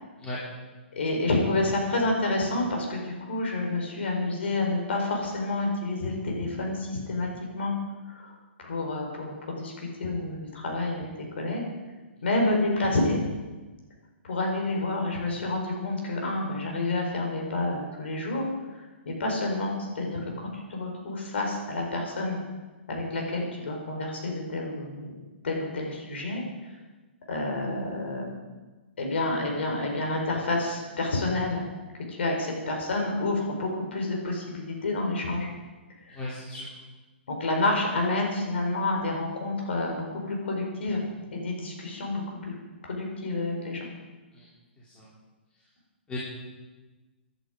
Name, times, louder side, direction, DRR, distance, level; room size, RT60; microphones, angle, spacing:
voice 1, 0.9-7.8 8.1-11.6 12.2-13.2 14.2-18.4 19.2-22.4 22.9-25.1 25.4-26.4 27.3-28.4 29.0-31.6 32.1-35.5 36.1-36.2 37.3-41.0 41.3-42.5 42.8-43.9, left 2 dB, 70° left, 1 dB, 4.8 m, -29 dB
voice 2, 36.1-36.7 44.3-44.5 44.8-45.1 46.1-46.2, left 2 dB, 15° left, -7 dB, 3.3 m, -37 dB
19.0 x 11.0 x 5.1 m, 1.2 s
hypercardioid pair, 130°, 6 cm